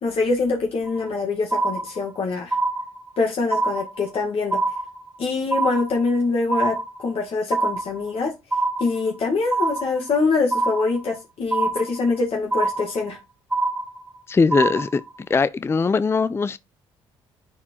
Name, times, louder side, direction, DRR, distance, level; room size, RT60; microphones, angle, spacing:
voice 1, 0.0-2.6 3.2-4.6 5.2-8.3 8.8-13.2, left 3 dB, 55° left, 1.6 m, -24 dB
sound 1, 0.9-1.2 1.5-2.2 2.5-3.2 3.5-4.2 4.5-5.2 5.5-6.2 6.5-7.2 7.5-8.2 8.5-9.2 9.5-10.2 10.5-11.2 11.5-12.2 12.5-13.2 13.5-14.2 14.5-15.2, right 3 dB, 10° right, 0.9 m, -25 dB
voice 2, 14.3-15.0 15.3-16.6, left 4 dB, 20° left, 0.4 m, -20 dB
9.9 x 4.3 x 3.0 m
supercardioid pair, 65°, 11 cm